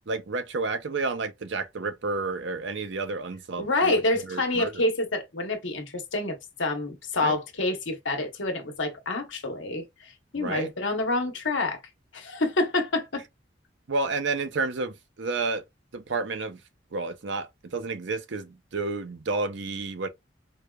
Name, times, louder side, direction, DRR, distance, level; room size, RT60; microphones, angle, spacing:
voice 1, 0.1-4.9 7.2-7.4 10.4-10.7 13.9-15.6 15.9-16.6 16.9-20.1, right 3 dB, 65° right, 0.6 m, -31 dB
voice 2, 3.6-9.8 10.3-11.8 12.1-13.2, left 2 dB, 75° left, 1.1 m, -27 dB
4.7 x 2.3 x 2.3 m
head